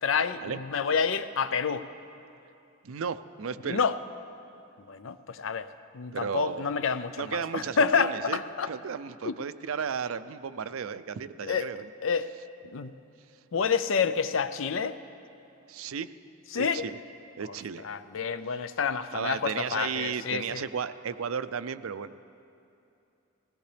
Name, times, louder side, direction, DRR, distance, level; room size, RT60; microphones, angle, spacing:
voice 1, 0.0-1.8 3.6-3.9 4.9-5.7 5.9-8.7 9.2-9.3 11.4-11.7 12.0-12.3 12.7-12.9 13.5-15.0 16.5-16.8 17.5-17.6 17.8-20.6, left 6 dB, 70° left, 12 dB, 0.5 m, -28 dB
voice 2, 2.8-3.8 6.1-6.7 7.2-8.4 8.7-11.9 15.7-16.1 16.5-17.0 17.4-17.9 19.1-22.2, right 6 dB, 80° right, 13 dB, 0.5 m, -34 dB
19.5 x 17.0 x 3.4 m, 2.7 s
head